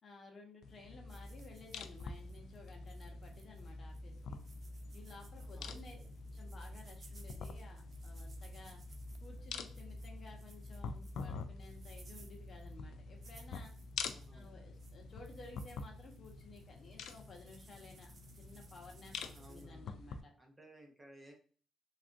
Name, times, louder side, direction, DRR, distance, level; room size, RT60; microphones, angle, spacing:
voice 1, 0.0-4.4 4.9-6.0 6.3-8.8 9.2-13.7 14.3-20.3, left 3 dB, 45° left, 1 dB, 0.9 m, -56 dB
sound 1, 0.6-20.2, left 4 dB, 75° left, 0.3 m, -47 dB
sound 2, 1.1-19.7, right 4 dB, 45° right, 0.6 m, -64 dB
voice 2, 5.3-6.1 14.0-14.7 19.2-21.3, right 1 dB, 20° right, 1 dB, 0.9 m, -59 dB
3.4 x 2.5 x 2.5 m, 0.43 s
cardioid pair, 90°, 0 cm